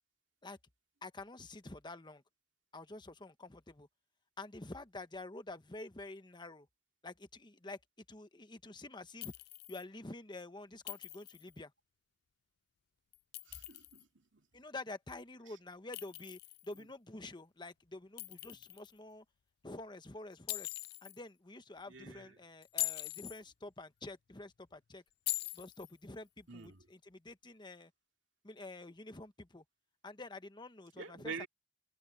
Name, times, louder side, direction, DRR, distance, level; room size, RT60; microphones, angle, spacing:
voice 1, 1.0-2.2 2.7-3.9 4.4-6.7 7.0-7.8 8.1-9.3 9.7-11.7 14.5-19.2 19.6-20.7 21.0-25.0 25.5-27.9 28.4-29.6 30.0-31.5, left 2 dB, 25° left, 1.1 m, -48 dB
Chink clink, 9.2-9.8 10.9-11.5 13.1-14.0 15.9-16.8 18.2-18.9 20.5-21.2 22.6-23.4 25.3-25.9, left 18 dB, 55° left, 0.3 m, -41 dB
voice 2, 13.5-14.5 15.5-15.6 21.9-22.4 26.5-26.8 30.9-31.5, right 4 dB, 75° right, 2.5 m, -47 dB
head